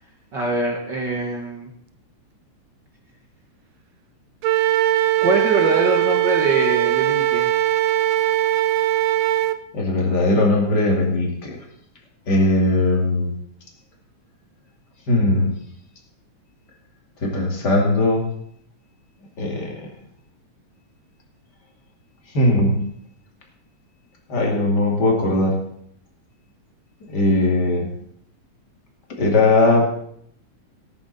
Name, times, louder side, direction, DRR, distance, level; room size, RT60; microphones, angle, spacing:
voice 1, 0.3-1.7 5.2-7.5, right 2 dB, 45° right, 0 dB, 1.9 m, -23 dB
Wind instrument woodwind instrument, 4.4-9.6, right 13 dB, 75° right, 1.8 m, -20 dB
voice 2, 9.7-11.6 12.3-13.3 15.1-15.5 17.2-18.2 19.4-19.9 22.3-22.8 24.3-25.6 27.1-27.9 29.1-29.8, left 2 dB, 35° left, 1 dB, 2.8 m, -19 dB
17.5 x 11.5 x 4.2 m, 0.68 s
omnidirectional pair, 3.3 m